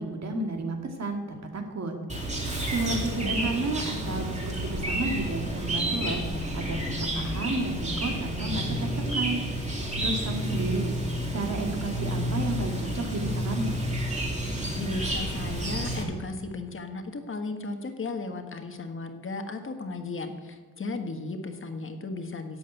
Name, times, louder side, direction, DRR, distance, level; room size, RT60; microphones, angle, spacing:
voice 1, 0.0-1.9 2.7-6.2 6.5-9.4 10.0-11.0 11.3-13.7, right 2 dB, 60° right, 3 dB, 2.1 m, -32 dB
Chirp tweet, 2.1-16.0, right 1 dB, 25° right, 2.6 m, -30 dB
voice 2, 2.9-3.5 14.8-22.6, left 3 dB, 45° left, 6 dB, 1.4 m, -35 dB
12.0 x 7.8 x 9.0 m, 1.4 s
wide cardioid pair, 175°, 30 cm